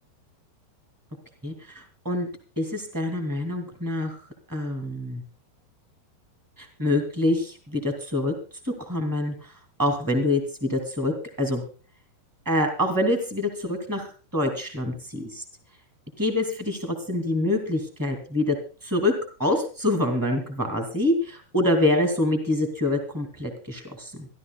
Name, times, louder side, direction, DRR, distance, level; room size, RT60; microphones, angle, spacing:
voice 1, 1.4-2.3 2.5-4.2 4.5-5.2 6.6-8.3 8.6-9.3 9.8-11.1 11.4-11.6 12.4-15.4 16.2-18.5 18.8-19.1 19.4-24.3, left 1 dB, 30° right, 4 dB, 0.4 m, -26 dB
24.5 x 13.0 x 2.3 m, 0.37 s
omnidirectional pair, 5.1 m